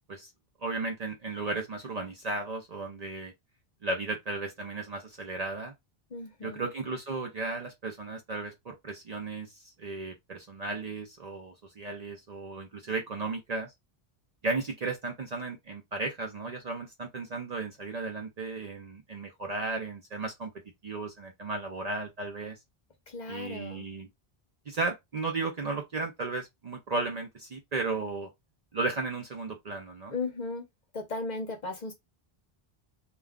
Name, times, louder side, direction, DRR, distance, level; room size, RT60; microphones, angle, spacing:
voice 1, 0.6-3.3 3.8-5.7 6.4-13.7 14.4-20.5 20.8-22.6 23.3-24.1 24.7-28.3 28.7-30.1, right 3 dB, 50° right, 0.6 m, -35 dB
voice 2, 6.1-6.6 23.1-23.9 30.1-30.6 30.9-31.9, left 3 dB, 50° left, 0.8 m, -36 dB
2.4 x 2.3 x 3.5 m
omnidirectional pair, 1.1 m